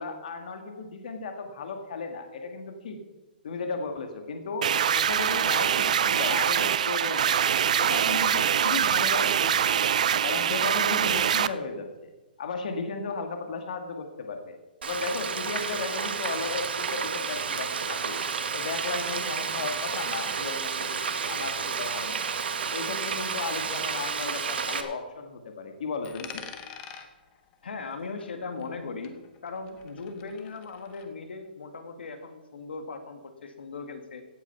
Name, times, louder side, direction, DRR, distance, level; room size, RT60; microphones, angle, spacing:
voice 1, 0.0-3.0 3.4-7.4 7.8-9.8 10.2-12.1 12.4-14.6 14.8-18.2 18.5-22.2 22.7-26.4, left 4 dB, 50° left, 5 dB, 1.7 m, -35 dB
sound 1, 4.6-11.5, right 9 dB, 45° right, 0.5 m, -24 dB
Frying (food), 14.8-24.8, right 6 dB, 75° right, 1.5 m, -31 dB
Coin (dropping), 26.0-28.8 29.0-31.1, left 8 dB, 15° left, 0.8 m, -46 dB
voice 2, 27.6-34.2, left 4 dB, 85° left, 7 dB, 2.1 m, -38 dB
16.0 x 8.6 x 5.8 m, 1.1 s
hypercardioid pair, 180°, 5 cm